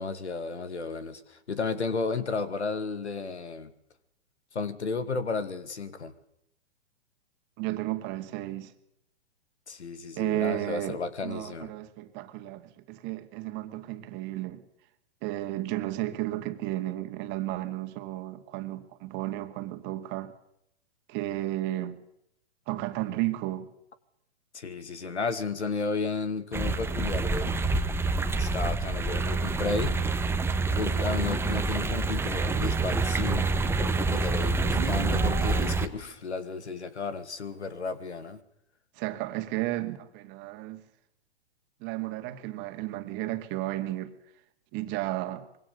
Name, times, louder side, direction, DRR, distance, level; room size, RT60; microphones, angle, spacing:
voice 1, 0.0-3.7 4.5-6.1 9.7-11.7 24.5-27.7 28.4-30.0 30.8-38.4, left 4 dB, 75° left, 2.5 m, -33 dB
voice 2, 7.6-8.7 10.1-11.0 11.2-14.6 15.2-20.3 21.1-22.0 22.7-23.7 39.0-40.8 41.8-44.1 44.7-45.5, right 16 dB, 35° right, 2.3 m, -33 dB
sound 1, 26.5-35.9, right 3 dB, 5° right, 1.3 m, -27 dB
Livestock farm animals working animals, 32.9-36.1, right 7 dB, 75° right, 1.6 m, -39 dB
25.5 x 23.5 x 7.0 m
figure-of-eight pair, 115°, 34 cm